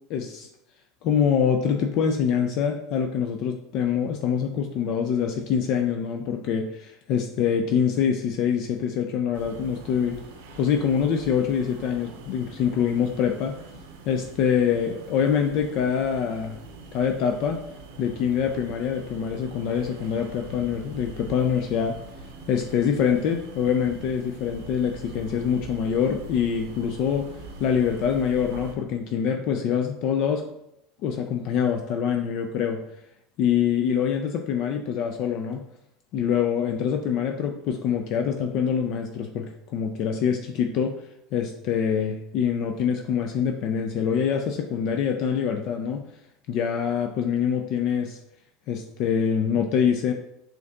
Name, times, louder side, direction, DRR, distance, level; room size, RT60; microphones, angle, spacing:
voice 1, 0.1-0.5 1.0-10.2 10.6-13.5 14.0-16.6 16.9-17.6 18.0-22.0 22.5-27.3 27.6-30.4 31.0-32.8 33.4-35.6 36.1-41.0 41.3-46.0 46.5-48.2 48.7-50.1, left 7 dB, 55° left, 4 dB, 0.4 m, -25 dB
sound 1, 9.3-28.7, right 2 dB, 70° right, 0.7 m, -43 dB
6.8 x 2.6 x 2.3 m, 0.81 s
hypercardioid pair, 75°, 0 cm